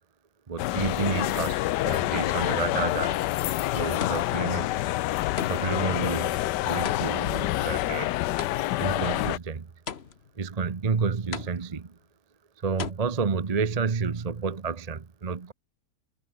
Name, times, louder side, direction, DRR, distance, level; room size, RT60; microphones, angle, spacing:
voice 1, 0.5-3.2 3.7-4.7 5.4-8.1 8.8-9.7 10.4-11.9 12.6-15.5, right 5 dB, 30° right, 0.8 m, -30 dB
sound 1, 0.6-9.4, left 16 dB, 90° left, 1.2 m, -27 dB
sound 2, 4.0-4.6 5.4-5.9 6.8-8.9 9.9-10.4 11.3-11.9 12.8-12.9, left 6 dB, 40° left, 1.3 m, -37 dB
omnidirectional pair, 1.8 m